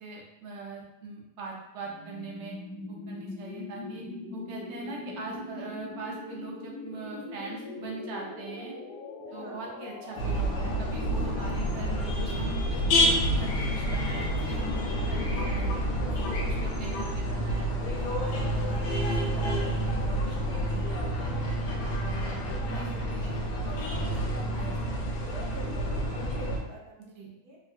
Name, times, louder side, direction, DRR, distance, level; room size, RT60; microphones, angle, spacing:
voice 1, 0.0-2.5 2.9-4.1 4.3-8.7 9.3-15.7 16.1-21.4 22.0-25.0 27.0-27.3, right 3 dB, 60° right, -2 dB, 0.7 m, -42 dB
sound 1, 1.8-13.6, left 2 dB, 65° left, 1.1 m, -42 dB
voice 2, 9.3-9.6 25.5-27.6, left 1 dB, 90° right, -2 dB, 1.3 m, -46 dB
sound 2, 10.2-26.6, equal, 85° left, 1.2 m, -28 dB
3.7 x 2.3 x 2.3 m, 0.89 s
omnidirectional pair, 1.7 m